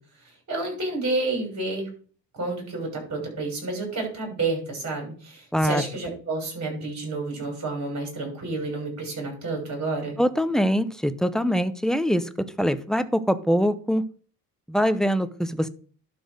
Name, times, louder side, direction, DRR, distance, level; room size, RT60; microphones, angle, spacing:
voice 1, 0.5-1.9 2.3-10.2, right 3 dB, 50° right, 1 dB, 6.2 m, -30 dB
voice 2, 5.5-5.9 10.2-12.3 12.6-14.0 14.7-15.7, equal, ahead, 12 dB, 0.6 m, -23 dB
11.5 x 4.3 x 6.4 m, 0.42 s
cardioid pair, 120°, 37 cm